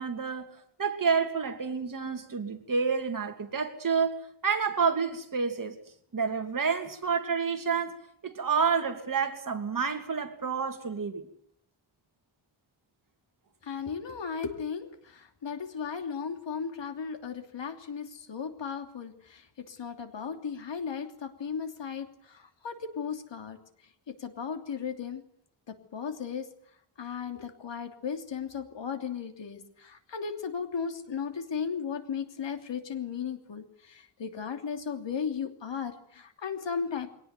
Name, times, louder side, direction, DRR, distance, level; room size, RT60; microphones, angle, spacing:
voice 1, 0.0-5.7 6.1-7.9 8.2-11.2, right 5 dB, 45° right, 5 dB, 2.9 m, -29 dB
voice 2, 13.6-23.6 24.1-25.2 25.7-26.5 27.0-37.1, left 6 dB, 70° left, 6 dB, 3.1 m, -36 dB
23.0 x 18.5 x 9.6 m, 0.66 s
wide cardioid pair, 160°, 45 cm